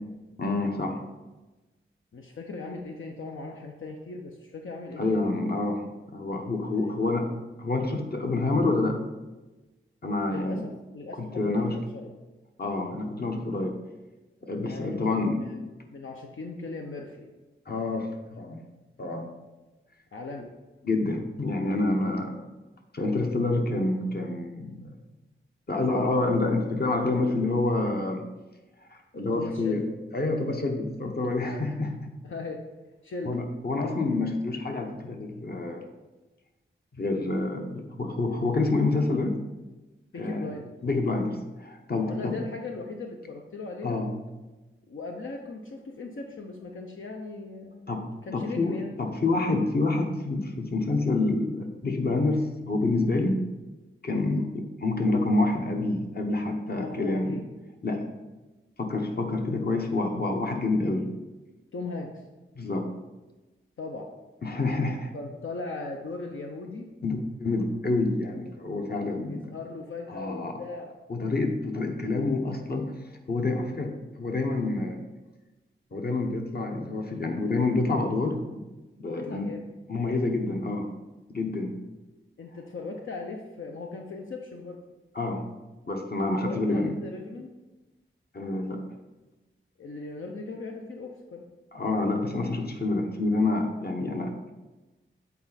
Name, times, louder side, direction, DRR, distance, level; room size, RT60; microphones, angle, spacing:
voice 1, 0.4-1.0 5.0-5.8 6.1-7.3 7.6-9.0 10.0-10.6 11.2-11.8 12.6-13.8 14.4-15.4 17.7-18.6 19.0-19.3 20.8-22.3 22.9-24.9 25.7-28.2 28.9-29.8 30.1-32.0 33.2-35.8 36.9-39.4 40.2-40.5 40.8-42.4 43.8-44.1 47.9-53.4 54.0-57.3 57.8-58.0 58.8-61.1 62.5-62.9 64.4-65.1 67.0-69.5 70.1-70.5 71.1-72.9 73.3-75.0 75.9-78.7 79.0-79.5 79.9-80.9 81.3-81.8 85.1-85.4 85.9-86.9 88.3-88.8 91.7-94.5, left 2 dB, 50° left, 3 dB, 1.0 m, -27 dB
voice 2, 2.1-5.4 6.8-7.3 10.2-12.1 14.7-17.3 20.1-20.5 29.3-29.8 31.4-31.6 32.2-32.6 33.0-33.4 40.1-40.7 42.0-44.0 44.9-48.0 48.2-48.9 56.8-57.4 61.7-62.2 63.8-64.1 65.1-66.9 68.9-70.9 79.0-79.7 80.1-80.2 82.4-84.8 86.4-87.5 89.8-91.4, left 3 dB, 70° left, 1 dB, 0.7 m, -38 dB
8.4 x 4.4 x 4.1 m, 1.1 s
wide cardioid pair, 80°, 21 cm